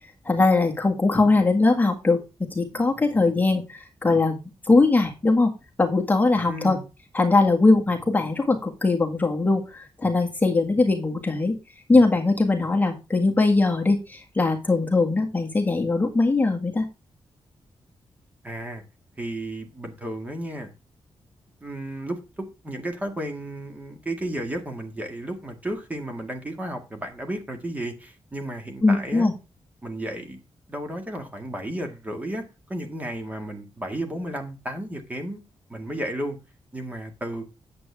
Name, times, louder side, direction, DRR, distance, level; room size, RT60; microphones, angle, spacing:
voice 1, 0.2-2.2 2.5-4.4 4.6-5.5 5.8-6.8 7.1-11.5 11.9-16.8 28.8-29.3, left 3 dB, 15° left, 1.7 m, -21 dB
voice 2, 6.5-6.9 18.4-18.8 19.2-20.7 21.6-29.3 29.8-30.4 30.7-32.4 32.7-35.4 35.7-36.4 36.7-37.5, right 1 dB, 15° right, 1.9 m, -33 dB
9.2 x 7.9 x 3.4 m
wide cardioid pair, 175°, 10 cm